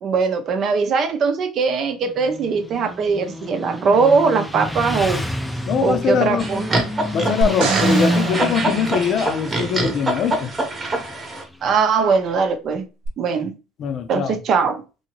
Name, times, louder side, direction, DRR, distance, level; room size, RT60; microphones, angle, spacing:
voice 1, 0.0-5.2 5.8-6.8 11.6-12.8 13.2-13.5 14.1-14.8, right 5 dB, 50° right, 0.7 m, -20 dB
Motorcycle, 2.0-11.8, equal, 5° left, 0.5 m, -28 dB
voice 2, 5.7-6.5 7.1-10.5 13.8-14.4, left 6 dB, 50° left, 0.5 m, -22 dB
sound 1, 6.4-11.4, right 2 dB, 20° right, 1.0 m, -25 dB
sound 2, 7.4-9.7 13.0-13.1, right 4 dB, 85° right, 0.9 m, -27 dB
2.8 x 2.7 x 2.9 m
cardioid pair, 115°, 0 cm